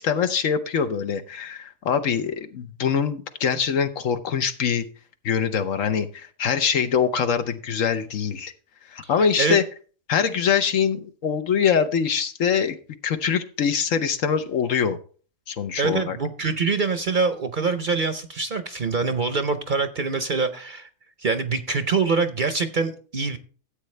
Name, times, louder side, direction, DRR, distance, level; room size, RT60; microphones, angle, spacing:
voice 1, 0.0-4.8 5.2-8.5 8.9-9.6 10.1-12.8 13.0-15.0 15.5-16.2, left 7 dB, 70° left, 9 dB, 1.2 m, -23 dB
voice 2, 15.8-20.9 21.2-23.4, right 4 dB, 45° right, 9 dB, 0.8 m, -24 dB
13.5 x 8.0 x 3.2 m, 0.41 s
omnidirectional pair, 1.4 m